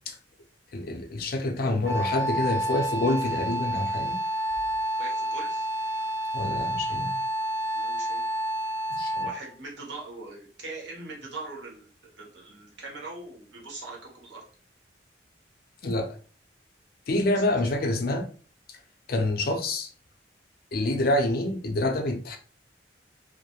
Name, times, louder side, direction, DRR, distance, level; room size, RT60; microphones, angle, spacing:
voice 1, 0.7-4.2 6.3-7.1 8.9-9.3 15.8-16.2 17.1-18.3 19.1-19.9 20.7-22.4, left 2 dB, 55° left, 0.5 m, -27 dB
Wind instrument woodwind instrument, 1.8-9.5, right 1 dB, 60° right, 0.7 m, -29 dB
voice 2, 5.0-5.7 7.7-8.2 9.1-14.4 17.5-17.7, right 3 dB, 75° right, 1.0 m, -41 dB
2.3 x 2.1 x 2.9 m
head